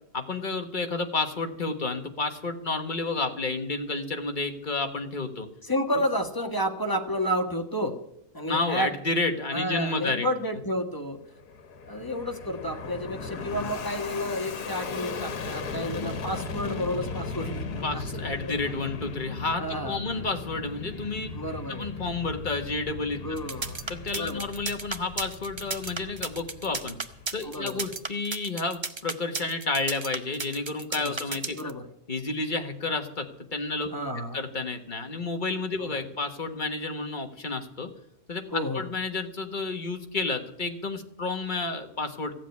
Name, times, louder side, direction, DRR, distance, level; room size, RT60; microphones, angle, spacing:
voice 1, 0.1-5.5 8.5-10.3 17.8-21.3 21.7-23.2 23.9-27.0 27.3-31.6 32.1-33.9 34.3-37.9 38.3-42.3, left 3 dB, 30° left, 5 dB, 1.5 m, -30 dB
voice 2, 5.6-7.9 8.3-8.9 9.5-11.2 11.8-18.9 19.6-20.0 21.3-21.9 23.2-23.8 24.1-24.4 27.4-27.8 31.0-31.2 31.6-31.9 33.9-34.4 35.8-36.0 38.5-38.8, equal, 15° left, 4 dB, 1.4 m, -31 dB
Fixed-wing aircraft airplane, 11.2-27.9, left 4 dB, 80° left, 1.9 m, -37 dB
sound 1, 23.4-31.7, right 4 dB, 30° right, 0.5 m, -33 dB
15.5 x 7.6 x 9.5 m, 0.75 s
omnidirectional pair, 1.7 m